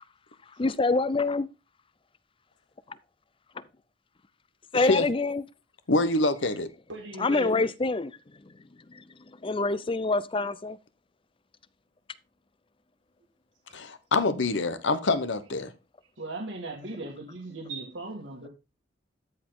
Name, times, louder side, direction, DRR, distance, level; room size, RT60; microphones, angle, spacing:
voice 1, 0.6-1.5 3.6-3.7 4.7-5.4 7.2-8.1 8.4-8.5 8.9-9.0 9.4-10.8, left 3 dB, 30° left, 0.5 m, -26 dB
voice 2, 4.7-5.1 5.9-6.7 13.7-15.7, left 2 dB, 75° left, 1.1 m, -25 dB
voice 3, 6.9-7.5 16.2-18.5, right 2 dB, 80° right, 2.0 m, -37 dB
13.5 x 4.9 x 3.8 m
head